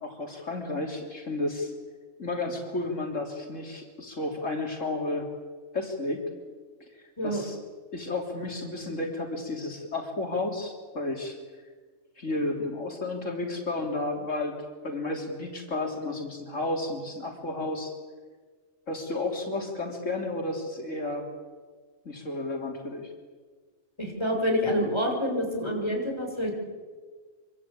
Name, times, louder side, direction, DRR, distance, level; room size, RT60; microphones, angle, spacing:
voice 1, 0.0-1.7 2.2-5.3 5.7-6.2 6.8-7.6 7.9-11.4 12.2-14.5 14.8-17.9 18.9-21.2 22.1-23.1, left 2 dB, 85° left, 1 dB, 3.9 m, -32 dB
voice 2, 24.0-26.5, equal, 20° left, 1 dB, 6.3 m, -27 dB
26.0 x 25.0 x 8.7 m, 1.5 s
omnidirectional pair, 1.3 m